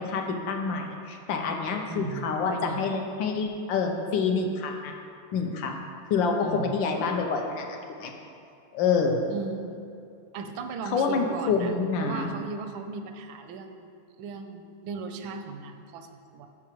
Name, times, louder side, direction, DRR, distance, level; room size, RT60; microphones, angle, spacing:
voice 1, 0.1-5.0 5.3-5.8 6.1-7.7 8.0-8.1 8.7-9.2 10.8-12.3, left 5 dB, 75° left, 3 dB, 1.4 m, -27 dB
voice 2, 1.9-2.9 6.4-6.8 9.3-9.8 10.3-11.7 12.0-13.9 14.2-16.5, right 4 dB, 85° right, 6 dB, 1.4 m, -37 dB
11.5 x 4.8 x 3.0 m, 2.5 s
omnidirectional pair, 2.2 m